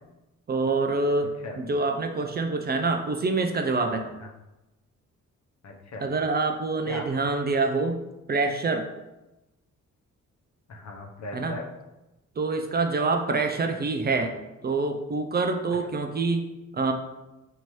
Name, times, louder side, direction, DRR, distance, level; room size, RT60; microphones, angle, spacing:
voice 1, 0.5-4.1 6.0-8.0 8.3-8.9 11.3-11.6 12.4-14.4 14.6-16.9, right 3 dB, 30° right, 5 dB, 0.4 m, -26 dB
voice 2, 5.6-6.1 6.9-7.1 10.7-11.7, left 2 dB, 60° left, 2 dB, 0.8 m, -38 dB
3.0 x 2.8 x 4.4 m, 0.99 s
cardioid pair, 80°, 31 cm